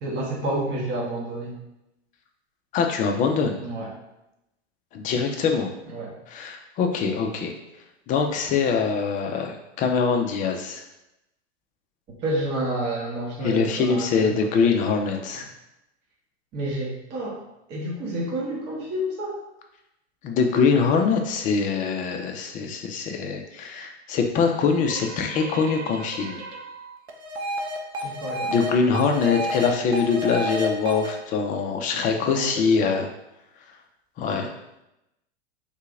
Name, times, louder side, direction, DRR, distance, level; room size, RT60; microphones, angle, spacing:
voice 1, 0.0-1.6 3.6-3.9 5.9-6.1 12.2-14.3 15.3-15.5 16.5-17.4 17.7-19.4 28.0-28.6 32.2-32.7, right 1 dB, 30° right, -3 dB, 1.1 m, -29 dB
voice 2, 2.7-3.6 4.9-5.7 6.3-7.5 8.1-10.8 13.4-15.4 20.2-26.4 28.5-33.1 34.2-34.5, left 5 dB, 25° left, 3 dB, 0.5 m, -23 dB
sound 1, 24.9-28.7 28.9-31.1, equal, 75° right, 0.7 m, -31 dB
3.3 x 2.8 x 3.7 m, 0.88 s
figure-of-eight pair, 95°, 34 cm